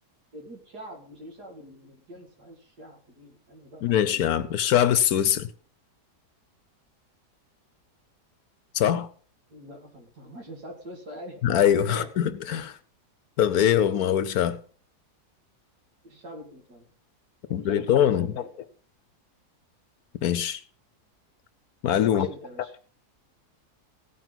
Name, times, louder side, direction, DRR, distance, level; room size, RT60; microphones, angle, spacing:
voice 1, 0.3-4.0 9.5-11.4 11.8-12.1 16.0-16.9 17.5-18.5 22.0-22.7, equal, 70° right, 2.9 m, -44 dB
voice 2, 3.8-5.5 8.7-9.1 11.4-12.8 13.4-14.6 17.5-18.4 20.2-20.6 21.8-22.3, left 10 dB, 70° left, 1.1 m, -22 dB
16.5 x 9.1 x 4.0 m
omnidirectional pair, 1.8 m